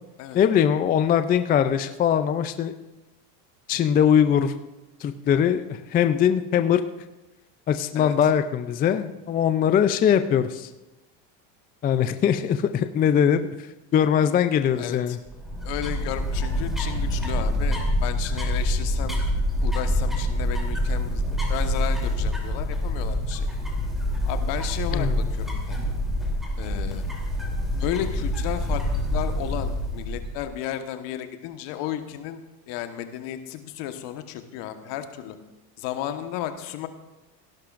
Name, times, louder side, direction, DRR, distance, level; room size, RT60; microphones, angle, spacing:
voice 1, 0.3-2.7 3.7-4.5 5.0-6.8 7.7-10.7 11.8-13.5 13.9-15.2 24.9-25.2, left 8 dB, 20° left, 10 dB, 0.3 m, -21 dB
voice 2, 14.8-15.2 15.6-19.2 19.6-21.2 21.5-23.5 24.3-25.8 26.6-27.0 27.7-28.8 29.1-32.4 32.7-35.4 35.8-36.9, left 11 dB, 60° left, 7 dB, 1.4 m, -33 dB
sound 1, 15.3-30.5, left 1 dB, ahead, 3.1 m, -26 dB
17.0 x 11.5 x 2.5 m, 1.1 s
supercardioid pair, 105°, 48 cm